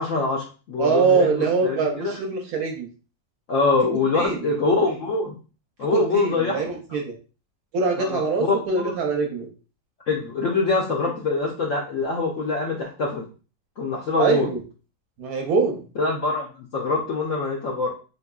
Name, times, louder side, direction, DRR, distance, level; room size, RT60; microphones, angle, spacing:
voice 1, 0.0-2.2 3.5-5.4 5.8-6.6 8.0-8.9 10.1-13.3 13.8-14.5 16.0-17.9, left 3 dB, 70° left, 0 dB, 0.7 m, -24 dB
voice 2, 0.8-2.9 4.1-4.4 5.9-7.1 7.7-9.5 14.2-14.6 15.2-15.8, right 4 dB, 65° right, 3 dB, 0.9 m, -23 dB
4.1 x 2.9 x 2.2 m, 0.36 s
omnidirectional pair, 1.9 m